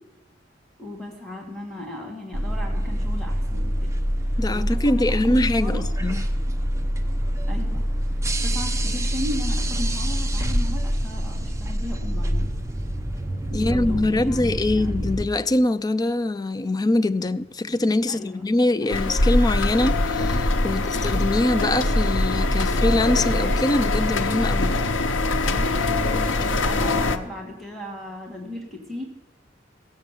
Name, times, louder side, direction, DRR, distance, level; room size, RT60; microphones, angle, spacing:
voice 1, 0.8-4.0 4.5-5.8 7.5-7.9 8.4-12.5 13.5-15.1 18.1-18.4 18.8-19.1 20.7-21.0 25.4-25.9 26.4-29.0, left 1 dB, ahead, 1.8 m, -36 dB
sound 1, 2.3-15.2, equal, 15° right, 0.9 m, -25 dB
voice 2, 4.4-6.2 13.5-24.8, left 2 dB, 20° left, 0.4 m, -23 dB
sound 2, 18.9-27.2, left 2 dB, 85° left, 0.9 m, -22 dB
16.5 x 7.6 x 7.3 m
head